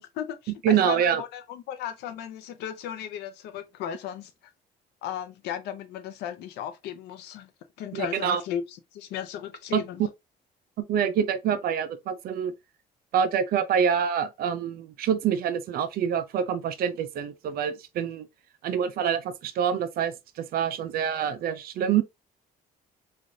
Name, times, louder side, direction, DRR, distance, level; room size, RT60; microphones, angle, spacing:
voice 1, 0.0-4.3 5.0-7.5 7.8-10.1 21.1-21.3, left 10 dB, 80° left, 0.6 m, -36 dB
voice 2, 0.6-1.2 7.9-8.4 9.7-9.8 10.9-12.5 13.1-18.3 18.6-22.0, right 8 dB, 65° right, 0.5 m, -26 dB
3.2 x 2.5 x 2.6 m
cardioid pair, 110°, 17 cm